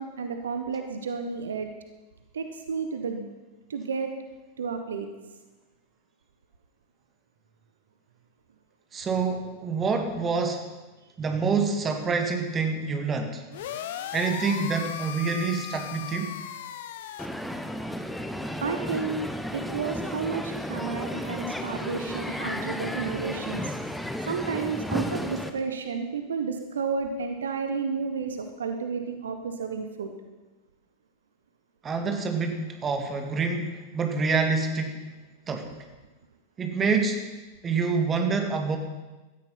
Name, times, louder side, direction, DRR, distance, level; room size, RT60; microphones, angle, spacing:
voice 1, 0.0-1.7 2.3-3.3 3.7-4.1 4.6-5.1 18.6-23.7 24.2-30.1, right 5 dB, 65° right, 6 dB, 1.3 m, -31 dB
voice 2, 8.9-10.7 11.2-13.4 14.1-16.4 31.8-35.0 35.5-35.7 36.6-37.2 37.6-38.8, right 4 dB, 20° right, 5 dB, 2.1 m, -27 dB
sound 1, 13.5-17.3, left 10 dB, 55° left, 1.0 m, -37 dB
Crowd, 17.2-25.5, left 1 dB, ahead, 1.1 m, -33 dB
17.0 x 13.0 x 5.7 m, 1.2 s
figure-of-eight pair, 90°, 0 cm